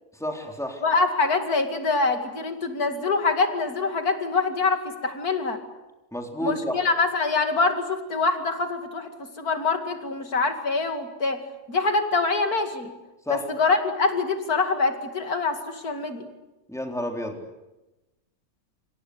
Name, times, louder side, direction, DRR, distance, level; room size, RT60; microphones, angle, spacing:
voice 1, 0.1-0.8 6.1-6.8 13.3-13.5 16.7-17.4, equal, ahead, 3 dB, 3.8 m, -30 dB
voice 2, 0.8-5.6 6.4-9.1 9.4-11.4 11.7-12.9 13.3-16.2, left 3 dB, 75° left, 6 dB, 2.9 m, -25 dB
27.5 x 26.5 x 8.1 m, 1.0 s
omnidirectional pair, 1.6 m